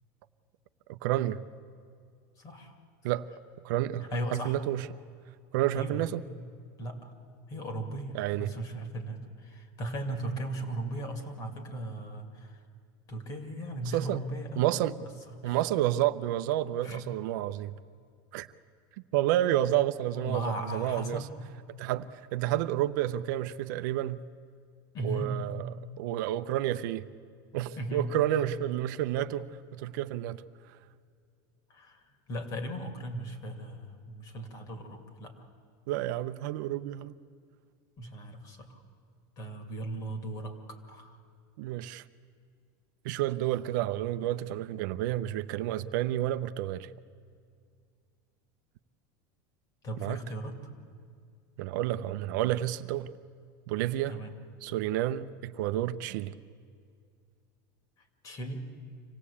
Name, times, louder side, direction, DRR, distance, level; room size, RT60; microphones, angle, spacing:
voice 1, 0.9-1.4 3.0-3.3 3.6-4.9 5.5-6.2 8.1-8.5 13.8-14.2 14.6-15.0 15.4-17.7 18.3-18.5 19.1-21.2 21.8-24.2 25.0-27.1 27.5-30.4 35.9-37.1 41.6-42.0 43.0-46.9 50.0-50.2 51.6-53.1 53.7-54.2 54.6-56.3, right 13 dB, 65° right, 0.6 m, -30 dB
voice 2, 2.4-2.8 4.1-4.6 5.7-6.1 6.8-7.1 7.5-12.6 13.1-14.7 15.3-15.6 16.8-17.1 20.1-21.3 24.9-25.3 27.8-28.1 31.7-35.5 38.0-38.8 39.4-41.2 49.8-50.6 54.1-54.3 58.2-58.6, right 1 dB, 35° left, 2.4 m, -37 dB
25.5 x 17.0 x 8.5 m
supercardioid pair, 155°, 11 cm